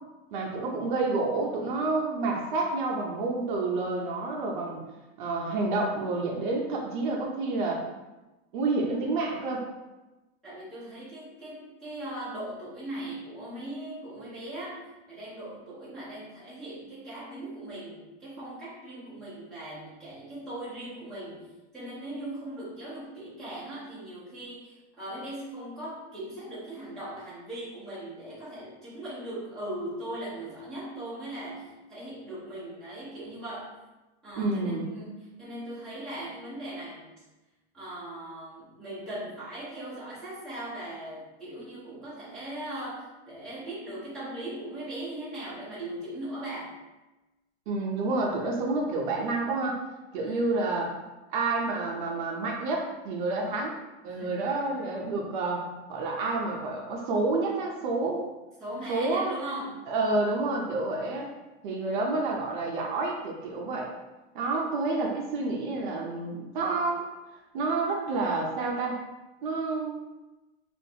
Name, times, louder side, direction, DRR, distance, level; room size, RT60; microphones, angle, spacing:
voice 1, 0.3-4.8 5.2-7.8 8.5-9.7 34.4-34.9 47.7-49.8 50.1-50.9 51.3-53.8 54.0-58.3 58.9-59.4 59.9-61.3 61.6-63.9 64.3-67.0 67.5-69.0 69.4-70.0, right 3 dB, 45° right, 0 dB, 0.5 m, -29 dB
voice 2, 10.4-21.5 21.7-33.7 34.2-37.1 37.7-46.7 50.2-50.6 54.1-54.5 58.6-59.9, right 1 dB, ahead, -13 dB, 0.5 m, -39 dB
3.8 x 2.4 x 2.7 m, 1.1 s
supercardioid pair, 175°, 34 cm